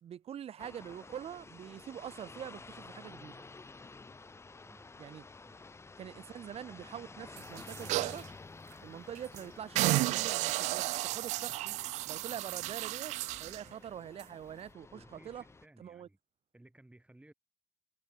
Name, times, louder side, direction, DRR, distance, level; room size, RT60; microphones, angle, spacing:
voice 1, 0.0-3.4 5.0-5.2 6.0-8.3 8.8-11.8 12.1-15.4 15.8-16.1, right 9 dB, 60° right, 1.8 m, -45 dB
sound 1, 0.6-15.7, left 3 dB, 25° left, 1.2 m, -52 dB
sound 2, 7.4-8.3 8.7-8.8 9.2-9.4 9.8-13.6 14.2-14.3, right 19 dB, 90° right, 0.6 m, -33 dB
voice 2, 14.9-16.2 16.5-17.3, right 1 dB, 10° right, 6.8 m, -59 dB
cardioid pair, 80°, 12 cm